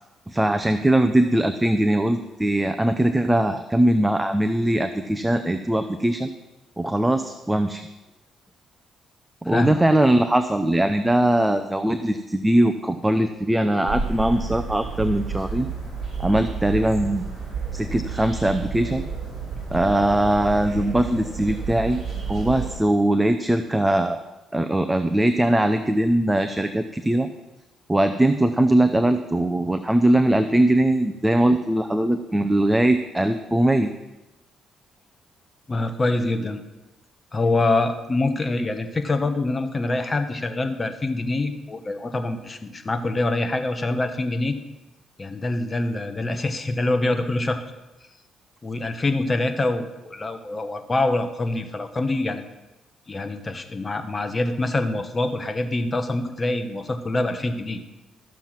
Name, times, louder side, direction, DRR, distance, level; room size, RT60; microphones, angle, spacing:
voice 1, 0.3-6.3 6.8-7.9 9.4-15.7 16.2-17.3 17.7-19.0 19.7-22.0 22.3-24.2 24.5-27.3 27.9-33.9, right 1 dB, 10° right, 8 dB, 0.6 m, -21 dB
voice 2, 9.5-9.8 35.7-36.6 37.3-44.6 45.2-47.6 48.6-52.4 53.1-57.8, left 2 dB, 25° left, 7 dB, 1.3 m, -25 dB
sound 1, 13.9-22.8, right 5 dB, 40° right, 5.2 m, -31 dB
13.5 x 7.2 x 5.9 m, 1.0 s
cardioid pair, 90°, 0 cm